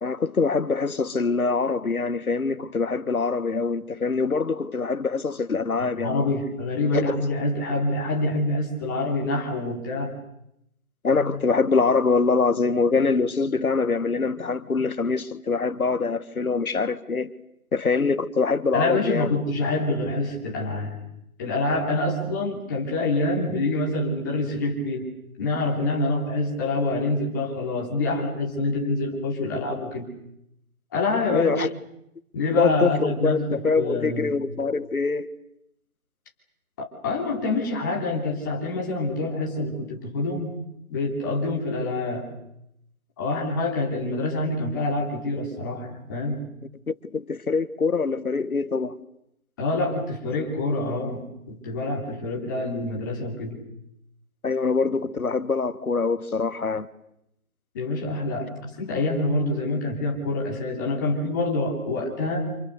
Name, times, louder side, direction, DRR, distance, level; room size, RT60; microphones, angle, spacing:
voice 1, 0.0-6.3 6.9-7.2 11.0-17.3 17.7-19.3 31.3-31.7 32.6-35.3 46.9-49.0 54.4-56.9, left 4 dB, 75° left, 1.7 m, -24 dB
voice 2, 5.8-10.1 11.1-11.4 18.7-21.0 21.4-25.1 25.4-30.1 30.9-31.5 32.3-34.3 36.8-40.5 40.9-42.3 43.2-46.4 49.6-53.6 57.7-62.4, left 2 dB, 15° left, 3.3 m, -26 dB
29.5 x 28.0 x 6.7 m
figure-of-eight pair, 170°, 43 cm